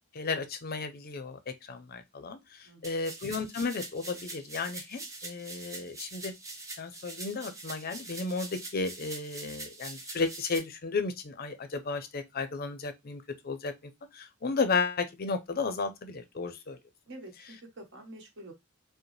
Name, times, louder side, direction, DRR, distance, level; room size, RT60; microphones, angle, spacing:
voice 1, 0.1-6.3 6.8-13.7 14.1-16.8, left 4 dB, 45° left, 0.5 m, -33 dB
voice 2, 2.6-3.0 17.1-18.5, right 1 dB, 60° right, 1.3 m, -47 dB
sound 1, 2.8-10.6, right 2 dB, 15° right, 0.7 m, -43 dB
4.9 x 2.1 x 3.2 m
head